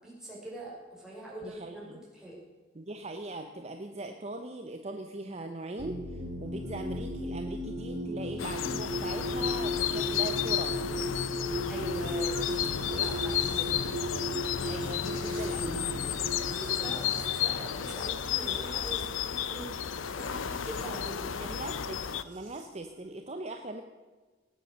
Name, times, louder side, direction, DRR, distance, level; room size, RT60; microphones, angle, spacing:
voice 1, 0.0-1.8 2.1-2.4 11.7-13.8 16.4-21.7, right 1 dB, 5° right, -6 dB, 5.2 m, -43 dB
voice 2, 1.4-2.0 2.7-10.7 14.6-16.0 21.4-23.8, right 2 dB, 35° right, 5 dB, 0.8 m, -40 dB
sound 1, 5.8-20.9 22.0-22.6, left 1 dB, 65° right, 3.5 m, -36 dB
sound 2, 7.8-12.7, right 2 dB, 40° left, 3.9 m, -48 dB
sound 3, 8.4-22.2, left 9 dB, 90° left, 0.6 m, -33 dB
19.0 x 7.9 x 6.4 m, 1.3 s
head